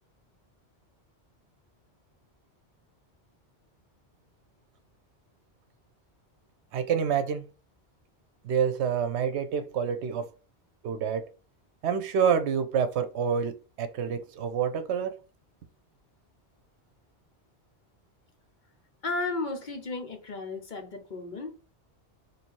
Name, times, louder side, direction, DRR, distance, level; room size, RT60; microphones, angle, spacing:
voice 1, 6.7-7.5 8.4-10.3 10.8-11.3 11.8-15.2, right 7 dB, 80° right, 0.9 m, -27 dB
voice 2, 19.0-21.7, left 3 dB, 50° left, 0.9 m, -34 dB
3.3 x 2.8 x 4.4 m
omnidirectional pair, 1.1 m